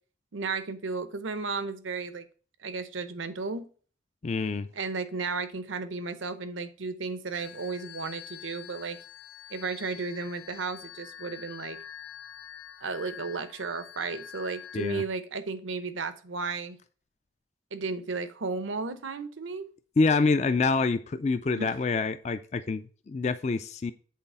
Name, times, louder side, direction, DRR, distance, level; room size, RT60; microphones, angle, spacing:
voice 1, 0.3-2.3 2.6-3.7 4.7-9.0 9.5-11.8 12.8-16.8 17.7-19.7 21.6-21.7, right 4 dB, 85° right, 12 dB, 0.8 m, -34 dB
voice 2, 4.2-4.7 14.7-15.0 20.0-23.9, left 4 dB, 35° left, 11 dB, 0.3 m, -26 dB
sound 1, 7.3-15.1, left 10 dB, 75° left, 0.7 m, -46 dB
7.6 x 4.0 x 5.5 m, 0.41 s
head